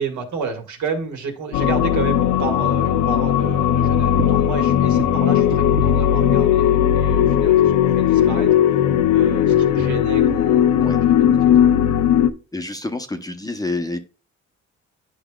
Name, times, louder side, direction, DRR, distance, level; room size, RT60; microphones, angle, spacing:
voice 1, 0.0-8.5 9.1-11.8, right 5 dB, 70° right, 3 dB, 1.8 m, -31 dB
sound 1, 1.5-12.3, left 10 dB, 70° left, 0.6 m, -17 dB
sound 2, 4.2-4.5 4.9-6.6 6.8-7.4 7.6-7.9 8.2-10.6 10.8-11.3 11.6-11.8 12.2-12.3, right 10 dB, 45° right, 0.5 m, -35 dB
voice 2, 12.5-14.0, left 2 dB, 10° left, 6 dB, 0.7 m, -28 dB
10.0 x 4.9 x 2.3 m, 0.33 s
cardioid pair, 90°, 30 cm